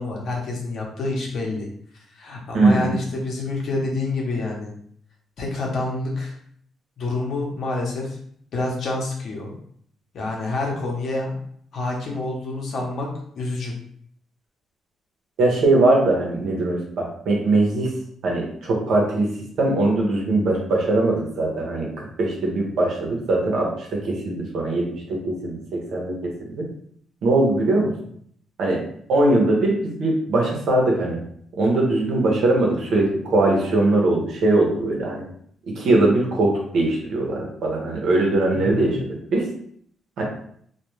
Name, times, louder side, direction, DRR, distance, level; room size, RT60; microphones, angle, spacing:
voice 1, 0.0-1.7 2.2-4.7 5.4-6.3 7.0-8.2 8.5-9.5 10.1-11.3 11.7-13.1 13.3-13.7 38.5-38.9, left 2 dB, 65° left, -1 dB, 0.8 m, -27 dB
voice 2, 2.5-3.0 15.4-17.9 18.2-19.3 19.6-26.7 27.2-27.9 28.6-28.8 29.1-31.2 31.6-35.2 35.7-39.5 40.2-40.3, right 2 dB, 70° right, -1 dB, 0.8 m, -21 dB
2.3 x 2.2 x 3.1 m, 0.64 s
cardioid pair, 80°, 0 cm